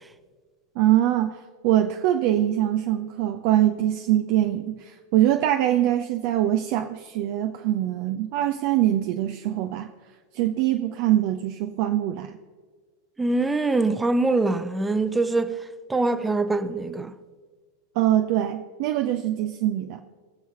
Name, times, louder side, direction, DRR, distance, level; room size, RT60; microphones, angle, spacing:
voice 1, 0.8-9.9 10.3-12.4 18.0-20.0, right 12 dB, 45° right, 0.5 m, -23 dB
voice 2, 13.2-15.6 15.9-17.1, right 2 dB, 10° right, 0.7 m, -23 dB
20.5 x 7.1 x 3.0 m
figure-of-eight pair, 90°, 0 cm